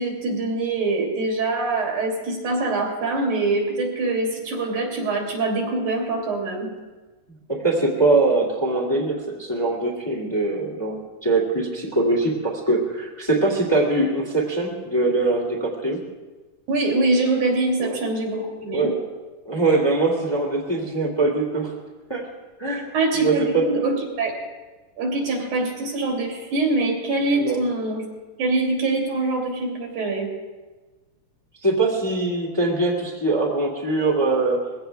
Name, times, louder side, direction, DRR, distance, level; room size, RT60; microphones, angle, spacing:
voice 1, 0.0-6.7 16.7-18.9 22.9-24.3 25.0-28.0 28.4-30.3, right 2 dB, 75° right, 0 dB, 4.1 m, -24 dB
voice 2, 7.5-16.0 17.8-18.0 18.7-19.0 19.5-21.7 22.1-22.3 22.6-22.9 23.2-23.6 27.3-27.6 31.6-34.6, right 2 dB, 10° left, -1 dB, 1.9 m, -22 dB
21.0 x 16.0 x 3.4 m, 1.2 s
omnidirectional pair, 3.5 m